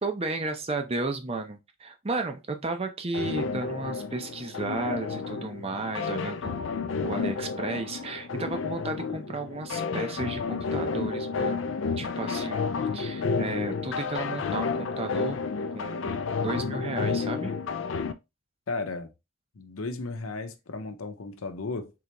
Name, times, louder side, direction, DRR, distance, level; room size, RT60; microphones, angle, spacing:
voice 1, 0.0-6.7 7.0-11.6 12.0-15.4 15.7-17.5, right 3 dB, 30° right, 0.6 m, -33 dB
sound 1, 3.1-18.1, left 5 dB, 60° left, 0.4 m, -31 dB
voice 2, 18.7-19.1 19.6-21.9, left 3 dB, 85° left, 0.7 m, -34 dB
3.8 x 3.3 x 2.9 m
head